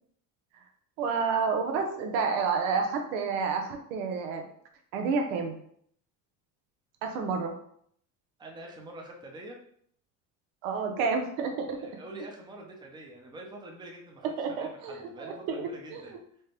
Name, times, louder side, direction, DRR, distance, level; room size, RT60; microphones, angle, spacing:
voice 1, 1.0-4.5 4.9-5.5 7.0-7.5 10.6-11.8 14.4-16.0, right 5 dB, 85° right, 4 dB, 0.8 m, -30 dB
voice 2, 8.4-9.6 11.7-16.1, right 1 dB, 10° right, 0 dB, 0.7 m, -45 dB
4.3 x 2.2 x 3.3 m, 0.65 s
cardioid pair, 120°, 39 cm